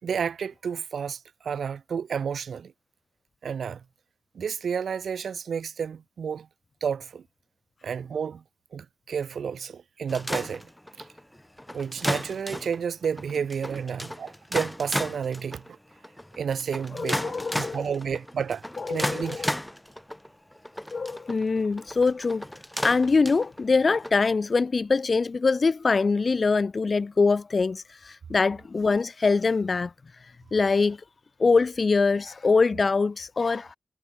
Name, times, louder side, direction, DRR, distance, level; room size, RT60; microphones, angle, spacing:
voice 1, 0.0-2.7 3.4-3.8 4.3-6.5 6.8-7.2 7.8-8.4 8.7-10.7 11.0-11.1 11.7-15.8 16.4-19.5, right 7 dB, 80° right, 4.1 m, -31 dB
sound 1, 10.1-24.1, left 1 dB, 10° left, 4.7 m, -34 dB
voice 2, 16.9-17.9 18.8-19.5 20.9-22.5 22.8-29.9 30.5-31.0 31.4-33.8, left 4 dB, 55° left, 1.2 m, -23 dB
cardioid pair, 40°, 0 cm